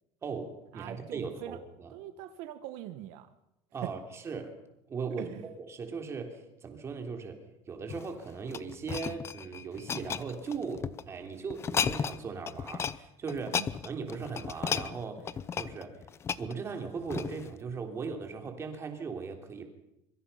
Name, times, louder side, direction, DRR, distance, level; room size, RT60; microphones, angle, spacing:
voice 1, 0.2-1.9 3.7-4.5 4.9-15.3 15.5-16.0 16.4-19.7, right 5 dB, 25° right, 5 dB, 3.5 m, -38 dB
voice 2, 0.7-1.6 1.9-3.3 3.8-3.9 5.2-5.5 13.5-13.7, right 14 dB, 75° right, 10 dB, 1.4 m, -42 dB
sound 1, 7.8-11.0 11.5-12.2 12.5-13.0 13.3-17.5 18.1-18.3, left 7 dB, 25° left, 0.8 m, -34 dB
26.0 x 24.0 x 5.8 m, 0.88 s
cardioid pair, 165°, 11 cm